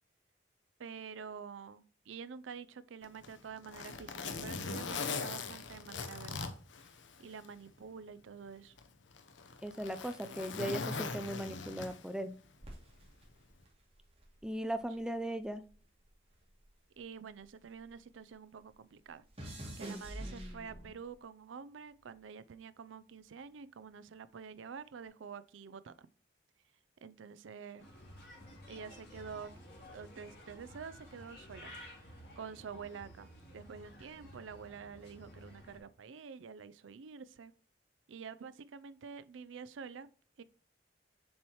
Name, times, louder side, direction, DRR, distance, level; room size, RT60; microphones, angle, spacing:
voice 1, 0.8-6.5 7.2-8.7 17.0-19.2 19.8-26.1 27.0-27.9 28.7-29.5 29.9-31.7 32.4-33.3 33.5-37.5 38.1-40.1 40.4-40.5, right 6 dB, 90° right, 0.4 m, -48 dB
Zipper (clothing), 3.0-7.5 7.9-8.0 8.8-12.2 13.4-13.6, left 4 dB, 80° left, 0.8 m, -41 dB
voice 2, 9.6-12.3 14.4-15.7 20.2-20.9, right 1 dB, 5° right, 0.4 m, -38 dB
sound 1, 12.6-15.1 15.4-18.0 18.3-21.1 21.9-22.2, right 1 dB, 30° right, 2.4 m, -48 dB
Bird, 27.8-35.8, equal, 60° left, 3.2 m, -53 dB
7.2 x 4.7 x 2.9 m
head